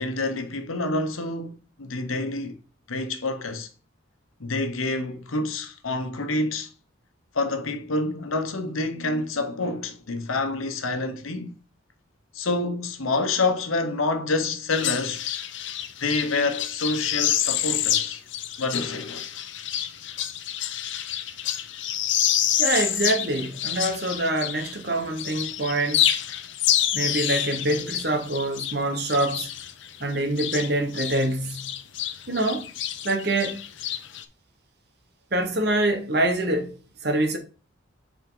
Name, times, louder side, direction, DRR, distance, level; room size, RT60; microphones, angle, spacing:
voice 1, 0.0-2.6 2.9-3.7 4.4-6.7 7.3-11.5 12.3-15.2 16.0-18.2 18.6-19.4, left 3 dB, 90° left, 1.1 m, -27 dB
sound 1, 14.7-24.9 25.2-31.3 31.5-34.2, left 11 dB, 65° left, 0.6 m, -28 dB
voice 2, 22.6-26.1 26.9-29.5 30.0-31.7 32.3-32.7 33.0-33.6 35.3-36.7 37.0-37.4, right 1 dB, 50° right, 1.3 m, -25 dB
7.2 x 4.5 x 3.9 m
head